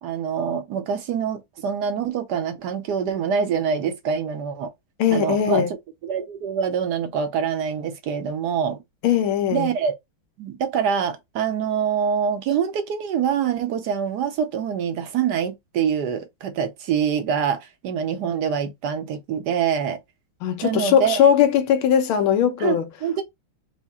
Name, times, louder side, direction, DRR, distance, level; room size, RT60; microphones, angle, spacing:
voice 1, 0.0-4.7 5.1-5.6 6.0-8.8 9.5-9.9 10.4-20.0 20.6-21.3 22.6-23.2, right 7 dB, 65° right, 1.2 m, -25 dB
voice 2, 5.0-5.7 9.0-9.7 20.4-22.8, left 9 dB, 85° left, 1.7 m, -19 dB
4.8 x 2.1 x 4.2 m
omnidirectional pair, 2.2 m